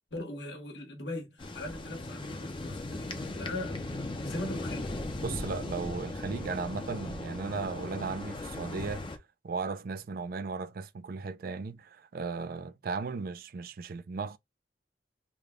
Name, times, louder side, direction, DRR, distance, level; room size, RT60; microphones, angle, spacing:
voice 1, 0.1-3.8 4.2-5.0, left 2 dB, 80° left, 1.3 m, -40 dB
sound 1, 1.4-9.2, left 2 dB, 30° left, 0.6 m, -38 dB
voice 2, 5.2-9.1 9.4-14.4, right 4 dB, 55° right, 0.4 m, -36 dB
3.4 x 2.2 x 3.6 m
head